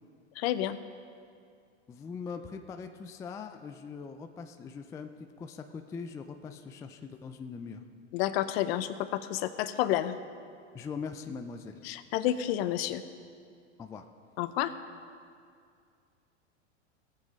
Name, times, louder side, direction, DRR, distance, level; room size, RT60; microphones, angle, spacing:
voice 1, 0.4-0.8 8.1-10.2 11.8-13.0 14.4-14.7, left 13 dB, 60° left, 12 dB, 0.8 m, -30 dB
voice 2, 1.9-5.1 5.4-7.8 10.7-11.8 13.8-14.0, left 5 dB, 10° left, 7 dB, 0.3 m, -41 dB
17.0 x 7.9 x 5.1 m, 2.3 s
hypercardioid pair, 115°, 35 cm